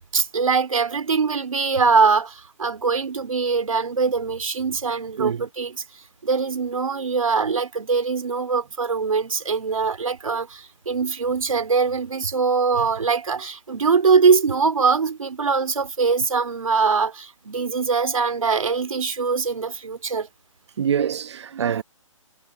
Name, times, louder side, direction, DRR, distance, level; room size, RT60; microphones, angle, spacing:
voice 1, 0.1-5.8 6.2-20.3, right 5 dB, 85° right, 3.2 m, -22 dB
voice 2, 20.8-21.8, right 8 dB, 55° right, 1.1 m, -25 dB
hypercardioid pair, 155°, 17 cm